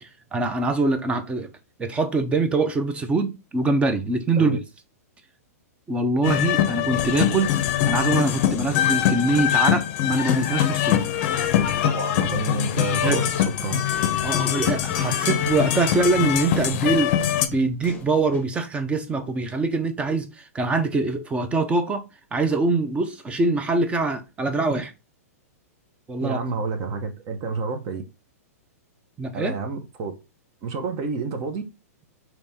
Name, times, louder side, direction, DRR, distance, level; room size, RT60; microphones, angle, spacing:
voice 1, 0.0-1.5 1.8-4.6 5.9-7.6 7.9-11.1 13.0-13.2 14.2-17.1 17.5-22.0 22.3-24.9 26.1-26.4 29.2-29.5, right 3 dB, 15° right, 0.6 m, -24 dB
sound 1, 6.2-17.5, left 11 dB, 45° left, 0.6 m, -23 dB
voice 2, 11.8-13.8 26.2-28.0 29.3-30.1 30.6-31.6, right 4 dB, 40° right, 0.9 m, -29 dB
sound 2, 13.3-18.5, left 4 dB, 20° left, 0.9 m, -42 dB
4.0 x 3.0 x 3.6 m
hypercardioid pair, 130°, 8 cm